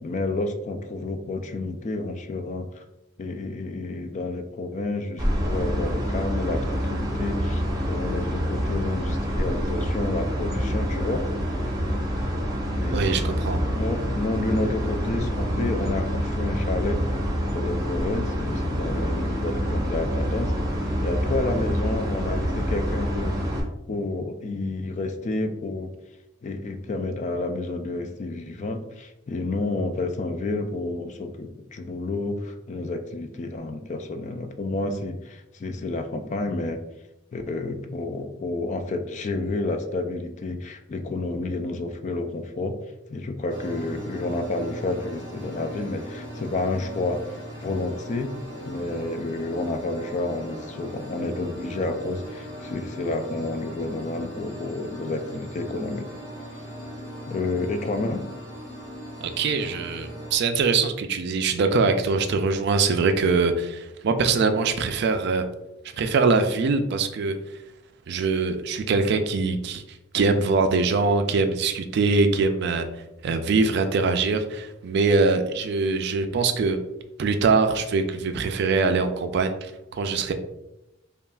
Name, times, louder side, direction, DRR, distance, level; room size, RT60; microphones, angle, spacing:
voice 1, 0.0-2.8 3.2-11.2 12.8-13.3 13.7-17.0 17.5-20.5 21.0-23.4 23.9-25.9 26.4-36.8 37.3-42.8 43.1-47.2 47.6-48.3 48.6-56.1 57.3-58.2, left 2 dB, 35° left, 7 dB, 0.3 m, -30 dB
sound 1, 5.2-23.6, equal, 20° right, 0.7 m, -27 dB
voice 2, 12.9-13.6 59.4-65.4 66.0-67.4 68.1-69.8 70.1-72.9 73.2-76.8 77.2-79.7 80.0-80.3, right 4 dB, 55° right, 8 dB, 0.4 m, -23 dB
sound 2, 43.5-60.4, equal, 70° left, 1.0 m, -39 dB
5.4 x 2.4 x 2.3 m, 0.91 s
head